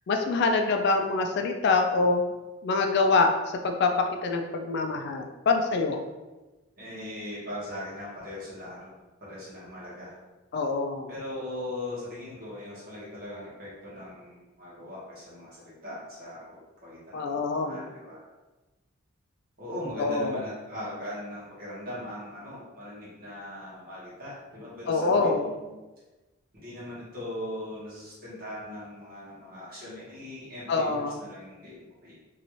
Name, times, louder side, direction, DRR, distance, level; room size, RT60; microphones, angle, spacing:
voice 1, 0.1-2.3 2.6-3.9 4.2-6.0 10.5-11.1 17.1-17.8 20.0-20.4 24.9-25.4 30.7-31.2, left 3 dB, 55° left, 4 dB, 0.3 m, -25 dB
voice 2, 6.8-10.2 11.1-18.3 19.6-25.7 26.5-32.1, left 1 dB, 50° right, -8 dB, 1.4 m, -40 dB
3.1 x 2.6 x 3.0 m, 1.1 s
head